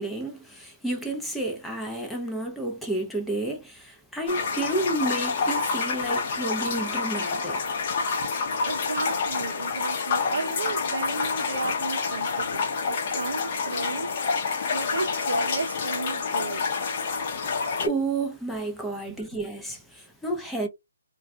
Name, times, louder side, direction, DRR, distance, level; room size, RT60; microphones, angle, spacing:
voice 1, 0.0-7.8 17.8-20.7, right 2 dB, 5° left, 0.5 m, -31 dB
sound 1, 4.3-17.9, left 5 dB, 40° left, 0.7 m, -28 dB
voice 2, 8.7-14.4 14.6-16.7 19.1-19.4, right 3 dB, 75° right, 0.5 m, -34 dB
2.3 x 2.2 x 2.6 m
hypercardioid pair, 150°, 0 cm